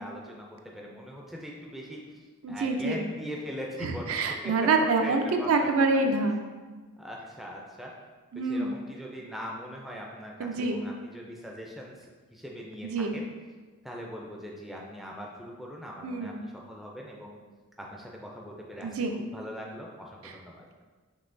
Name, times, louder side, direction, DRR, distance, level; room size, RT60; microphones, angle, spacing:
voice 1, 0.0-2.0 2.5-4.2 4.4-4.5 5.0-5.7 6.0-6.1 7.0-7.9 8.3-13.2 13.8-17.4 17.8-20.6, equal, ahead, -2 dB, 0.3 m, -41 dB
voice 2, 2.4-3.0 3.8-6.4 8.3-8.8 10.4-10.8 12.8-13.2 16.0-16.4 18.8-19.2 20.2-20.3, right 3 dB, 75° right, 4 dB, 0.4 m, -26 dB
5.4 x 3.1 x 2.6 m, 1.4 s
head